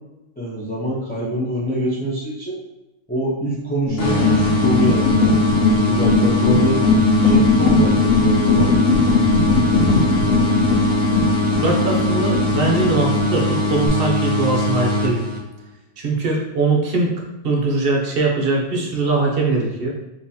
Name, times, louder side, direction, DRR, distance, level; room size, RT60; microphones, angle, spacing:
voice 1, 0.4-2.6 3.1-5.4 5.7-6.8 7.2-8.8, right 1 dB, 10° left, -6 dB, 0.5 m, -25 dB
sound 1, 3.9-13.9, left 3 dB, 70° left, 0.9 m, -19 dB
sound 2, 4.0-15.7, left 1 dB, 50° left, 1.0 m, -21 dB
voice 2, 11.6-15.2 16.0-17.1 17.4-19.9, right 3 dB, 50° right, -1 dB, 0.8 m, -21 dB
3.8 x 2.9 x 2.7 m, 0.94 s
omnidirectional pair, 1.5 m